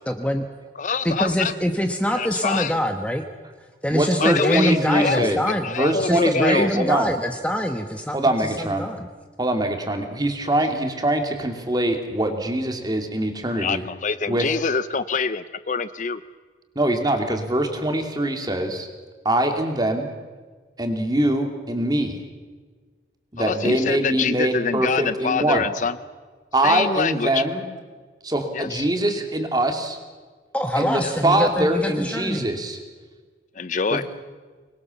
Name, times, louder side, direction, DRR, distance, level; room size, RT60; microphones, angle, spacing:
voice 1, 0.1-0.4 1.0-3.2 3.8-5.7 6.0-9.1 30.5-32.5, equal, 5° left, 5 dB, 1.1 m, -24 dB
voice 2, 0.8-1.5 2.1-2.8 4.2-6.9 13.5-16.2 23.4-25.9 26.6-27.4 28.5-28.9 31.0-31.1 33.6-34.0, left 5 dB, 45° left, 14 dB, 0.6 m, -25 dB
voice 3, 3.9-5.4 5.7-7.1 8.1-8.9 9.4-13.8 14.3-14.5 16.7-18.9 19.2-20.1 20.8-22.2 23.3-25.7 26.5-27.6 28.2-30.0 30.8-32.8 33.9-34.0, right 1 dB, 20° right, 4 dB, 2.7 m, -23 dB
25.0 x 21.0 x 7.1 m, 1.4 s
head